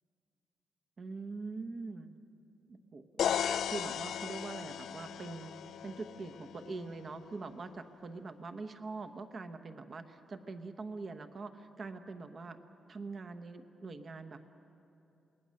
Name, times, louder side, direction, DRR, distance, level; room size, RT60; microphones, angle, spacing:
voice 1, 1.0-2.1 2.7-3.3 3.7-12.6 12.9-14.4, right 3 dB, 40° right, 8 dB, 1.0 m, -43 dB
sound 1, 3.2-7.0, left 9 dB, 75° left, 0.4 m, -36 dB
28.0 x 20.0 x 6.5 m, 2.8 s
wide cardioid pair, 150°, 0 cm